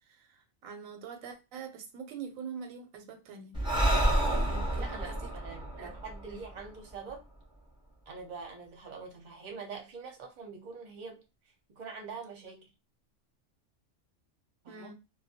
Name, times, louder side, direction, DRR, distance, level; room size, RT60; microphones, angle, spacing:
voice 1, 0.1-5.2 5.8-5.9 6.2-6.4 14.7-14.9, right 6 dB, 90° right, 1.0 m, -45 dB
Breathing, 3.5-7.1, right 1 dB, 5° right, 0.6 m, -29 dB
voice 2, 4.3-7.2 8.1-11.2 11.7-12.7 14.6-14.9, right 5 dB, 45° right, 0.7 m, -44 dB
2.2 x 2.0 x 2.7 m
omnidirectional pair, 1.3 m